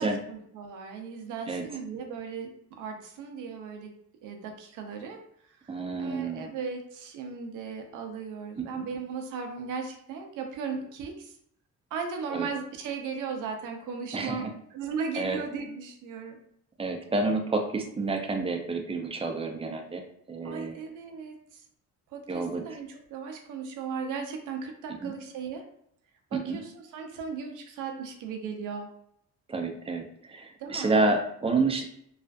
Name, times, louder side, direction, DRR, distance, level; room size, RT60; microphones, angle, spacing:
voice 1, 0.0-3.9 4.2-5.2 5.6-11.3 11.9-16.4 20.4-21.6 22.1-25.7 26.3-28.9 30.6-31.0, right 5 dB, 85° right, 4 dB, 0.6 m, -37 dB
voice 2, 5.7-6.5 8.6-8.9 12.3-12.5 14.1-14.5 15.1-15.4 16.8-20.0 20.3-20.7 22.3-22.6 25.0-25.1 26.3-26.6 29.5-31.8, right 3 dB, 20° right, 4 dB, 0.4 m, -29 dB
2.4 x 2.4 x 2.2 m, 0.70 s
cardioid pair, 90°, 30 cm